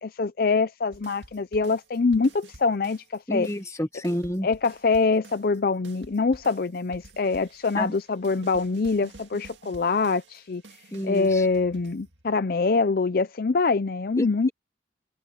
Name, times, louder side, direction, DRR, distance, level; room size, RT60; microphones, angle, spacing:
voice 1, 0.0-3.5 4.4-10.6 11.0-14.5, left 4 dB, 55° left, 0.5 m, -24 dB
sound 1, 0.9-3.2 3.4-12.5, right 2 dB, 80° right, 2.1 m, -50 dB
voice 2, 3.3-4.5 7.7-7.9 10.9-11.5 14.2-14.5, equal, 15° left, 1.2 m, -29 dB
head